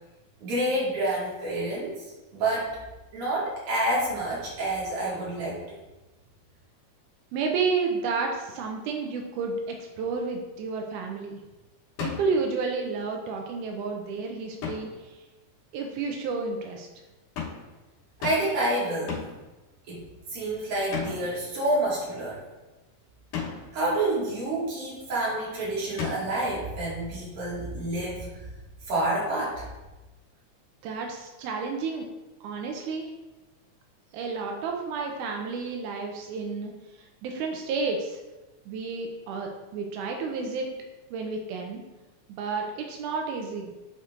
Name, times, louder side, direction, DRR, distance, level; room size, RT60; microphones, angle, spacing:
voice 1, 0.4-1.9 2.3-2.8 3.1-5.8 18.2-19.1 19.9-20.0 20.3-22.4 23.7-28.3 28.8-29.7, right 1 dB, 50° right, -6 dB, 2.7 m, -28 dB
voice 2, 7.3-11.4 12.0-15.2 15.7-16.9 30.8-32.1 32.4-33.1 34.1-36.7 37.0-38.2 38.7-40.7 41.1-41.8 42.3-43.7, right 4 dB, 90° right, 2 dB, 2.1 m, -31 dB
sound 1, 12.0-12.4 14.6-15.0 17.4-17.7 18.2-18.6 19.1-19.5 20.9-21.4 23.3-23.8 26.0-26.5, left 6 dB, 85° left, 2.7 m, -34 dB
9.6 x 4.3 x 2.5 m, 1.1 s
omnidirectional pair, 3.5 m